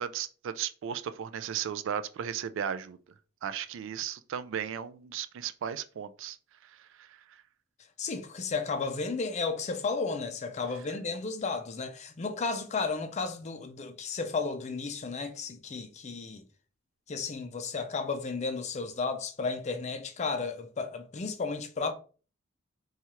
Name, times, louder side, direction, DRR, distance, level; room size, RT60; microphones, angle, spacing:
voice 1, 0.0-3.0 3.4-6.4 6.6-7.1, right 8 dB, 65° right, 0.3 m, -35 dB
voice 2, 8.0-16.4 17.1-21.9, left 4 dB, 35° left, 0.4 m, -33 dB
4.3 x 2.4 x 2.9 m
head